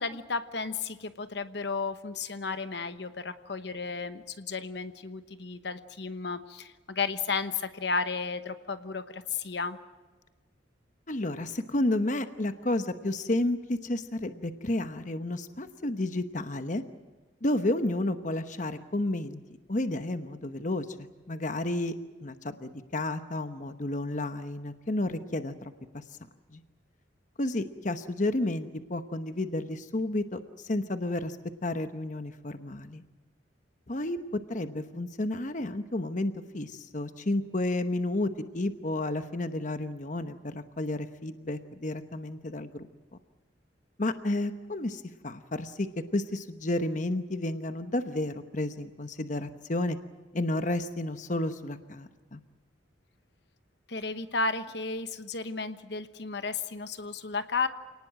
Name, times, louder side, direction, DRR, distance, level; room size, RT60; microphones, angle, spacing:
voice 1, 0.0-9.8 53.9-57.7, left 4 dB, 65° left, 11 dB, 1.1 m, -33 dB
voice 2, 11.1-16.8 17.4-19.4 19.7-21.9 22.2-26.0 26.5-26.6 27.4-31.4 31.6-33.0 33.9-42.9 44.0-45.9 46.1-50.0 50.3-52.4, left 1 dB, 40° left, 9 dB, 1.0 m, -31 dB
28.0 x 19.0 x 7.6 m, 1.3 s
head